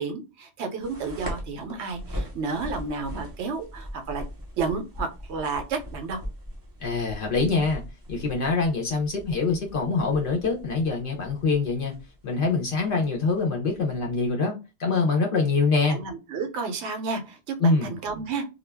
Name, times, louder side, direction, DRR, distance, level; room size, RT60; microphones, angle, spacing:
voice 1, 0.0-4.3 4.6-6.2 15.9-18.5, right 4 dB, 70° right, 5 dB, 0.8 m, -31 dB
sound 1, 0.8-14.3, equal, 20° right, 0.7 m, -40 dB
voice 2, 6.8-7.8 8.1-11.9 12.2-14.5 14.8-16.0 17.6-17.9, left 4 dB, 55° left, 0 dB, 0.7 m, -24 dB
2.3 x 2.1 x 3.2 m, 0.28 s
omnidirectional pair, 1.3 m